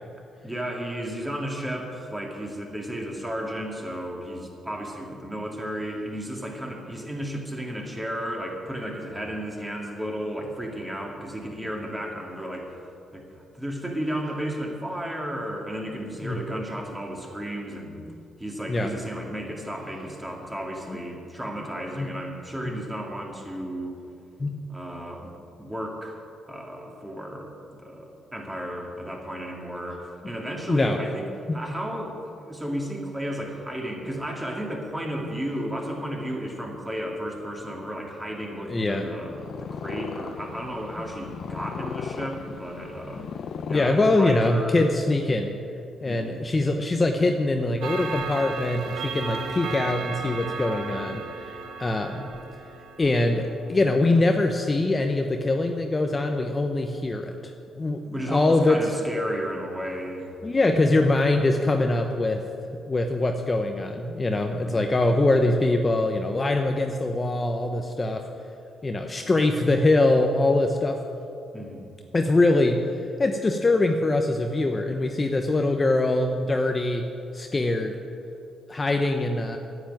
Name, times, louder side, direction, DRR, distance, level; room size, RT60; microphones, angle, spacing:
voice 1, 0.4-12.8 13.1-13.2 13.5-18.0 18.4-23.9 24.7-26.2 26.5-31.3 31.5-43.3 43.7-44.8 46.0-46.4 58.1-60.3 64.6-64.9 71.5-71.9, equal, 10° right, 0 dB, 2.5 m, -33 dB
voice 2, 30.7-31.0 31.5-31.6 38.7-39.1 43.7-45.5 46.0-52.3 53.0-57.5 57.8-58.8 60.4-62.4 62.9-68.2 68.8-71.0 72.1-72.8 73.2-77.1 77.3-78.0 78.7-79.6, left 2 dB, 25° left, 4 dB, 0.8 m, -23 dB
Purr, 39.2-44.8, left 6 dB, 60° left, 0.6 m, -36 dB
Clock, 47.8-53.8, right 4 dB, 80° right, 1.2 m, -35 dB
10.0 x 8.1 x 9.2 m, 2.6 s
cardioid pair, 90°, 0 cm